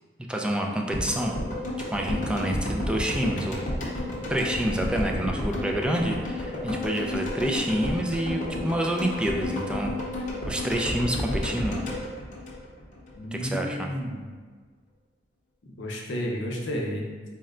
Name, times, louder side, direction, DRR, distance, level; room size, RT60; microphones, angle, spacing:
voice 1, 0.3-1.4 1.9-3.6 4.3-9.9 10.5-11.8 13.3-13.9, right 1 dB, 5° right, 1 dB, 0.3 m, -28 dB
sound 1, 0.9-13.1 13.4-13.5, left 1 dB, 45° left, 0.7 m, -31 dB
voice 2, 13.2-14.2 15.6-17.1, equal, 80° left, -1 dB, 0.7 m, -32 dB
4.1 x 2.1 x 3.6 m, 1.5 s
head